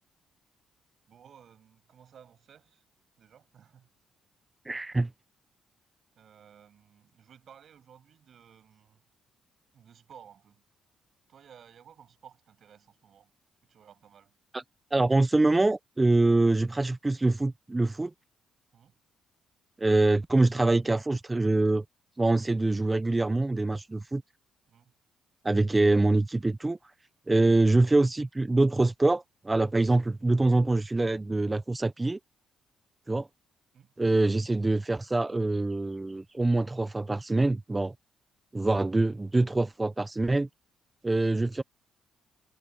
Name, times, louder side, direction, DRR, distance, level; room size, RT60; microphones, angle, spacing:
voice 1, 1.1-2.8 3.2-3.9 6.2-9.0 9.7-10.6 11.3-13.3 13.7-14.3 18.7-18.9 24.7-24.9 33.7-33.9, right 8 dB, 60° right, 7.8 m, -55 dB
voice 2, 4.7-5.1 14.5-14.6 14.9-18.1 19.8-21.8 22.2-24.2 25.4-26.8 27.3-32.2 33.1-33.3 34.0-37.9 38.5-40.5 41.0-41.6, right 2 dB, 15° right, 0.6 m, -24 dB
cardioid pair, 90°, 0 cm